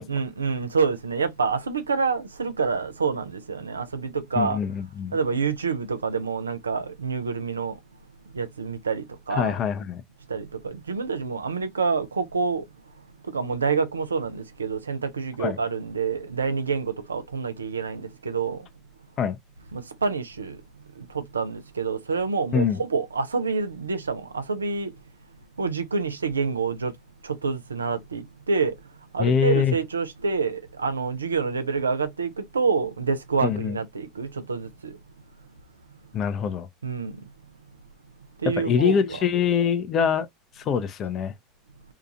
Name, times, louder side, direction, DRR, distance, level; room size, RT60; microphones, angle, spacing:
voice 1, 0.0-4.6 5.1-7.8 8.3-9.6 10.3-12.6 13.3-18.6 19.7-20.6 21.3-24.9 25.6-26.9 27.2-28.7 29.1-34.9 36.8-37.1 38.4-39.2, right 5 dB, 90° right, 0.4 m, -27 dB
voice 2, 4.4-5.2 9.3-10.0 15.4-15.6 19.2-19.4 22.5-22.8 29.2-29.7 33.4-33.8 36.1-36.7 38.4-40.3 40.6-41.3, left 7 dB, 40° left, 0.5 m, -24 dB
2.8 x 2.4 x 2.4 m
hypercardioid pair, 80°, 0 cm